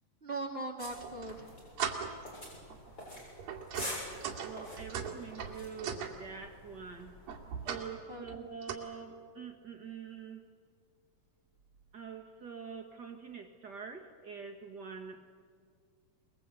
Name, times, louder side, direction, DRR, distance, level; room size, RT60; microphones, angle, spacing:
voice 1, 0.2-1.5 8.1-8.2, right 2 dB, 25° right, 1 dB, 1.6 m, -39 dB
sound 1, 0.8-7.7, left 1 dB, 20° left, 7.6 m, -47 dB
sound 2, 1.0-1.3 1.8-2.3 2.7-2.9 3.4-6.2 7.3-7.9 8.2-8.7, right 7 dB, 85° right, 4.0 m, -38 dB
voice 2, 4.4-7.1 7.6-10.4 11.9-15.4, right 6 dB, 55° right, 3 dB, 1.1 m, -45 dB
25.5 x 21.5 x 8.3 m, 2.1 s
omnidirectional pair, 4.0 m